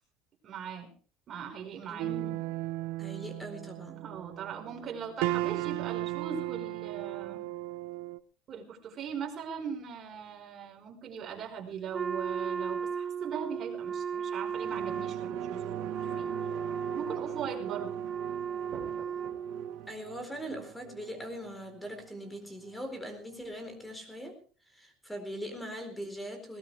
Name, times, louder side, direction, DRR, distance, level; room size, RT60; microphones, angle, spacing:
voice 1, 0.4-0.9 1.3-2.1 4.0-7.4 8.5-16.3 16.9-18.0 18.7-19.0, right 7 dB, 35° right, 1 dB, 4.9 m, -40 dB
voice 2, 1.9-2.4 3.0-4.1 19.9-24.4 24.7-26.6, equal, 5° left, 7 dB, 4.3 m, -41 dB
sound 1, 2.0-8.2, right 17 dB, 85° right, 0.8 m, -35 dB
Wind instrument woodwind instrument, 11.9-19.8, right 7 dB, 20° right, 1.0 m, -35 dB
sound 2, 14.4-23.4 23.8-23.9, right 16 dB, 65° right, 1.3 m, -44 dB
20.5 x 18.0 x 3.5 m, 0.39 s
cardioid pair, 165°, 0 cm